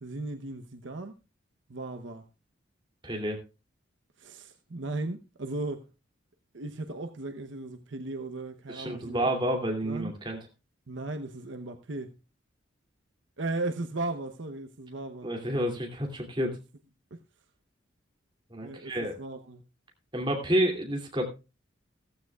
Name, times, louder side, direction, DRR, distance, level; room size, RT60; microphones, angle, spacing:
voice 1, 0.0-1.1 1.7-2.2 4.2-5.9 6.5-9.3 9.8-10.1 10.9-12.1 13.4-15.3 17.1-17.2 18.6-18.9 19.2-19.6, right 2 dB, 70° right, 0.9 m, -36 dB
voice 2, 3.0-3.4 8.7-10.4 15.2-16.6 18.5-19.1 20.1-21.3, right 1 dB, 25° right, 2.7 m, -29 dB
15.0 x 14.5 x 2.3 m
head